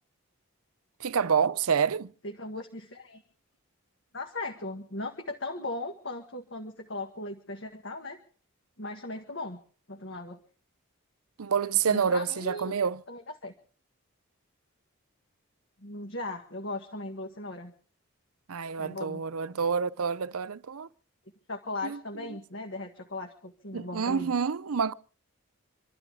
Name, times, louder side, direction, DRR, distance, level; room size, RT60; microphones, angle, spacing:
voice 1, 1.0-2.1 11.4-13.0 18.5-20.9 21.8-22.0 23.7-24.9, right 6 dB, 85° right, 0.6 m, -28 dB
voice 2, 2.3-3.2 4.1-8.2 8.8-9.6 9.9-10.4 11.9-12.7 13.1-13.5 15.8-17.7 18.8-19.2 21.5-24.3, left 2 dB, 55° left, 1.7 m, -38 dB
26.5 x 13.0 x 3.6 m
head